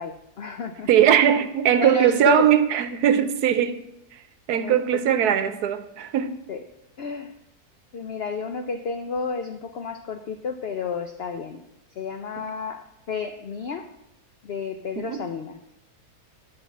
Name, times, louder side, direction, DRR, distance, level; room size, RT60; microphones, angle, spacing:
voice 1, 0.0-0.9 1.8-2.5 4.5-5.0 6.5-6.6 7.0-7.3 7.9-11.6 12.0-13.9 14.4-15.6, left 5 dB, 70° left, 0.5 m, -31 dB
voice 2, 0.9-4.2 4.5-6.4 12.4-12.5 15.0-15.2, right 9 dB, 75° right, 1.2 m, -20 dB
11.0 x 4.8 x 7.2 m
omnidirectional pair, 1.7 m